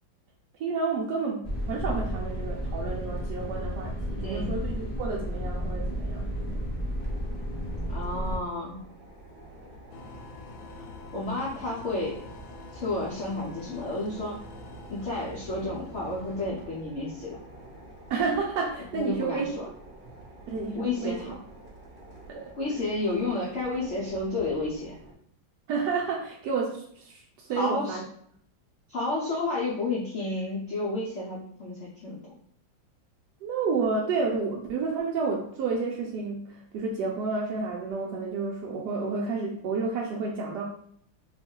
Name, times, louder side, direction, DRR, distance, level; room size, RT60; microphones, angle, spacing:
voice 1, 0.6-6.7 18.1-19.5 20.5-21.2 22.3-22.9 25.7-28.0 33.4-40.6, right 4 dB, 75° right, -2 dB, 1.0 m, -30 dB
sound 1, 1.4-8.4, equal, 25° left, 0.7 m, -32 dB
voice 2, 4.2-4.5 7.9-8.8 11.1-12.2 12.7-14.4 14.9-17.4 18.9-19.4 20.7-21.4 22.6-25.0 27.5-28.0 28.9-32.2, left 2 dB, 70° left, -5 dB, 0.6 m, -31 dB
sound 2, 7.0-25.1, right 1 dB, 55° right, 0.6 m, -49 dB
sound 3, 9.9-16.5, left 1 dB, 85° left, 1.4 m, -45 dB
3.1 x 2.3 x 4.3 m, 0.65 s
omnidirectional pair, 2.1 m